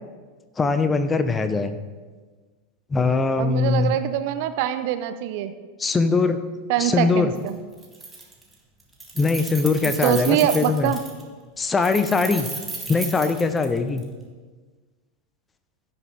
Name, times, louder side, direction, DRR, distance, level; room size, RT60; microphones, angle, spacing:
voice 1, 0.6-1.8 2.9-4.0 5.8-6.4 6.8-7.3 9.2-10.9 11.6-12.5 12.9-14.0, left 4 dB, 15° left, 10 dB, 0.7 m, -21 dB
voice 2, 3.4-5.5 6.7-7.6 9.8-11.0, right 11 dB, 50° right, 11 dB, 0.5 m, -24 dB
Keys jangling, 7.4-7.5 7.8-8.5 8.8-11.2 11.8-14.0, right 3 dB, 10° right, 1.8 m, -34 dB
16.0 x 6.1 x 3.7 m, 1.4 s
figure-of-eight pair, 85°, 0 cm